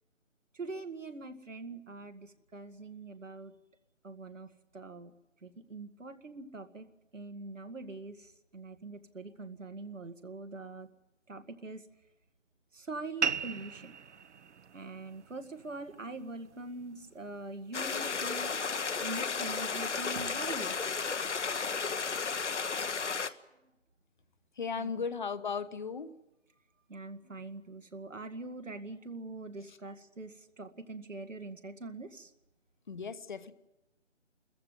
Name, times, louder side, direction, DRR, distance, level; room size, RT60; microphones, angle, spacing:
voice 1, 0.5-3.5 4.0-4.5 4.7-5.1 5.4-6.9 7.1-10.9 11.3-11.8 12.7-14.0 14.7-18.5 19.0-20.7 24.8-25.1 26.9-32.3, right 3 dB, 85° right, 7 dB, 2.1 m, -43 dB
sound 1, 13.2-18.3, right 6 dB, 65° right, 0.8 m, -39 dB
sound 2, 17.7-23.3, left 5 dB, 70° left, 1.3 m, -33 dB
voice 2, 24.6-26.1 32.9-33.5, left 5 dB, 40° left, 12 dB, 1.1 m, -36 dB
25.5 x 14.5 x 9.5 m, 0.95 s
figure-of-eight pair, 160°, 37 cm